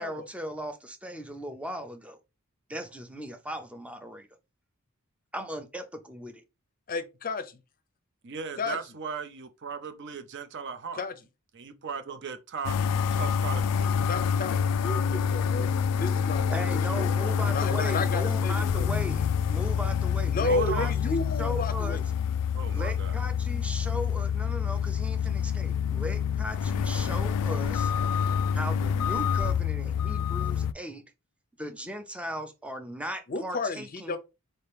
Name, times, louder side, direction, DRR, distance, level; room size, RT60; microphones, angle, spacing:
voice 1, 0.0-2.2 2.7-4.3 5.3-6.4 15.7-15.8 16.5-22.0 22.7-27.9 28.5-31.0 31.6-34.2, equal, 5° right, 0.5 m, -38 dB
voice 2, 6.9-7.5 8.6-8.8 11.0-11.1 14.1-15.7 15.9-18.9 20.3-22.0 33.3-34.2, left 3 dB, 40° left, 0.5 m, -32 dB
voice 3, 8.2-11.1 11.5-12.8 13.1-14.0 20.5-20.9 22.5-23.1, right 5 dB, 50° right, 0.6 m, -37 dB
sound 1, 12.6-30.7, left 7 dB, 90° left, 0.3 m, -27 dB
4.2 x 2.8 x 3.3 m
head